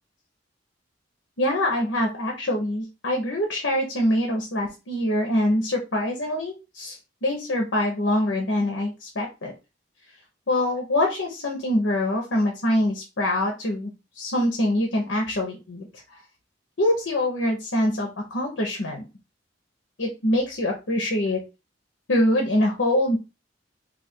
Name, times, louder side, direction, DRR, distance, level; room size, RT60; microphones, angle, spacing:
voice 1, 1.4-9.5 10.5-13.9 14.2-15.9 16.1-16.2 16.8-19.0 20.0-21.4 22.1-23.2, left 1 dB, 80° left, 1 dB, 0.9 m, -24 dB
2.8 x 2.5 x 4.3 m, 0.27 s
head